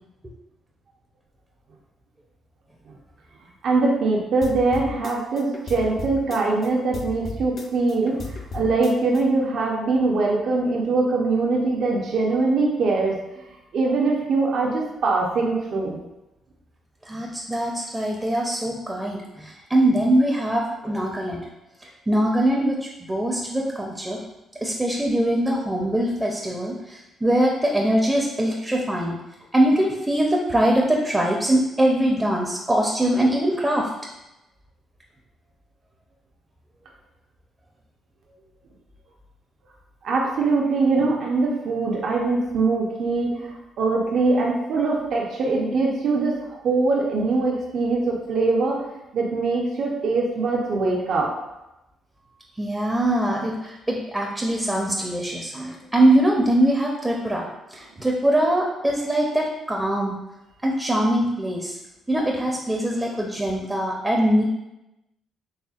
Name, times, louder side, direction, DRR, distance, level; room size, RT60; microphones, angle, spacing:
voice 1, 3.6-8.2 8.5-13.2 13.7-16.0 40.0-43.5 43.8-48.8 49.1-51.3, right 3 dB, 65° right, -2 dB, 0.6 m, -22 dB
sound 1, 4.4-6.7 6.9-9.2, left 3 dB, 50° left, 0.4 m, -35 dB
voice 2, 17.1-21.4 22.1-24.2 24.6-29.2 29.5-33.9 52.6-60.2 60.6-61.8 62.1-64.4, right 1 dB, 15° right, -1 dB, 0.5 m, -22 dB
4.2 x 3.3 x 2.4 m, 0.94 s
cardioid pair, 90°, 0 cm